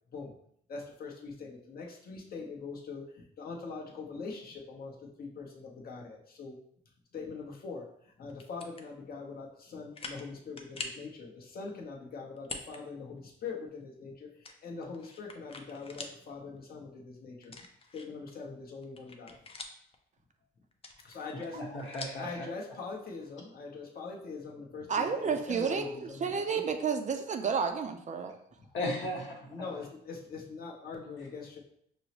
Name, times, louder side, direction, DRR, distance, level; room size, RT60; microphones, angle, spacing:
voice 1, 0.7-6.6 7.1-17.6 17.9-19.4 21.0-21.6 22.2-26.6 29.5-31.6, left 4 dB, 50° left, -1 dB, 0.9 m, -43 dB
sound 1, 8.3-8.9 9.4-9.5 9.9-10.3 10.6-11.1 12.4-12.8 13.2-13.3 14.4-16.2 16.6-16.7 17.4-18.3 18.7-20.0 20.7-22.3, left 3 dB, 30° left, 0.5 m, -44 dB
voice 2, 21.3-22.3 28.7-29.7, left 1 dB, 70° left, -1 dB, 1.2 m, -36 dB
voice 3, 24.9-28.4, right 6 dB, 40° right, 6 dB, 0.4 m, -31 dB
5.4 x 2.0 x 2.9 m, 0.68 s
cardioid pair, 90°, 20 cm